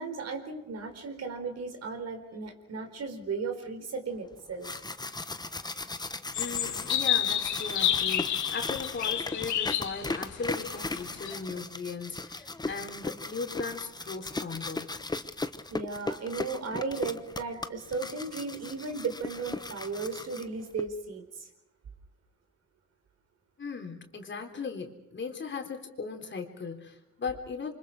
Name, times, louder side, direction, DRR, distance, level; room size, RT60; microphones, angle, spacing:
voice 1, 0.0-4.8 15.7-21.5, right 4 dB, 55° right, 5 dB, 4.4 m, -35 dB
sound 1, 4.4-20.8, left 2 dB, 15° left, 1.1 m, -37 dB
sound 2, 6.3-11.3, left 10 dB, 75° left, 2.2 m, -30 dB
voice 2, 6.3-14.9 23.6-27.7, left 4 dB, 40° left, 3 dB, 3.9 m, -38 dB
28.0 x 25.0 x 5.0 m, 0.91 s
cardioid pair, 90°, 30 cm